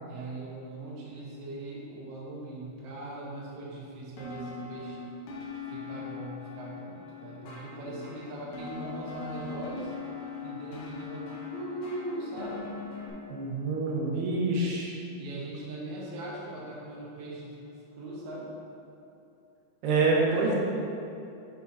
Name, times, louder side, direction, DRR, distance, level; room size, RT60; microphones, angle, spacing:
voice 1, 0.0-5.0 5.7-9.9 10.4-12.7 15.2-17.6 18.0-18.5, right 1 dB, 65° right, -5 dB, 1.9 m, -40 dB
sound 1, 4.2-13.1, left 4 dB, 90° left, 1.5 m, -41 dB
voice 2, 13.3-15.0 19.8-20.6, right 3 dB, 85° right, -3 dB, 3.0 m, -26 dB
7.1 x 6.7 x 2.7 m, 2.8 s
omnidirectional pair, 4.6 m